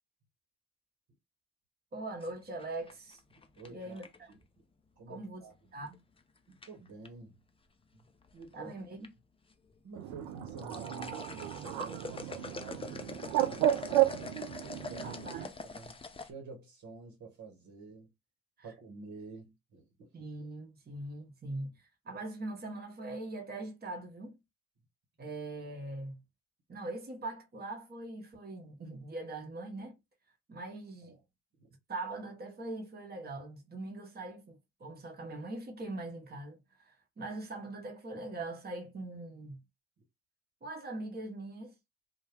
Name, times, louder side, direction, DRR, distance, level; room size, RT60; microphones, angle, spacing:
voice 1, 1.9-3.2 3.7-4.3 5.1-5.5 5.7-6.0 8.5-9.1 15.0-15.5 20.1-21.8 22.0-24.4 25.2-26.2 26.7-30.0 30.5-31.2 31.9-39.6 40.6-41.7, right 2 dB, 30° right, 0.9 m, -42 dB
sound 1, 2.2-4.3 5.9-6.2 6.6-7.1 8.0-8.5 8.8-9.1 9.5-9.6 10.3-16.3, left 3 dB, 15° left, 0.5 m, -44 dB
voice 2, 3.6-4.0 4.3-4.4 5.0-5.5 5.8-5.9 6.5-7.3 7.9-8.1 8.3-8.7 9.8-14.4 14.9-15.3 15.6-18.1 18.6-20.1 31.0-31.2 31.6-31.7, right 3 dB, 65° right, 1.1 m, -49 dB
Bird, 10.0-15.5, right 14 dB, 80° right, 0.5 m, -33 dB
2.2 x 2.1 x 3.2 m
hypercardioid pair, 45°, 33 cm